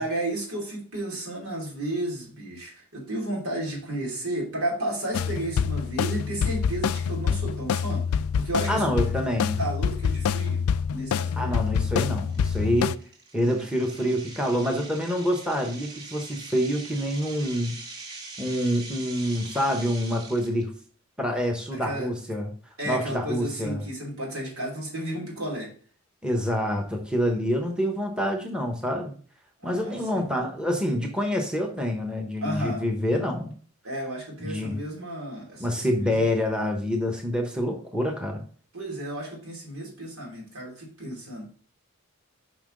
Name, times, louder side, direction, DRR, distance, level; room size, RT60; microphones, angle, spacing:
voice 1, 0.0-8.1 8.3-10.6 10.9-11.6 21.7-22.1 22.8-25.7 29.6-30.2 32.4-32.8 33.8-36.3 38.7-41.5, right 1 dB, 90° right, -1 dB, 2.9 m, -33 dB
sound 1, 5.1-13.0, left 7 dB, 85° left, 0.3 m, -26 dB
voice 2, 8.7-9.6 11.4-13.0 13.3-17.8 18.4-20.7 21.2-22.5 22.8-23.8 26.2-29.1 29.6-33.5 34.4-34.7 35.6-38.4, equal, 5° right, 1 dB, 1.0 m, -27 dB
sound 2, 10.4-10.5 11.0-11.2 11.7-11.8 12.3-20.6, right 3 dB, 50° right, 1.9 m, -43 dB
5.8 x 5.6 x 3.8 m, 0.43 s
head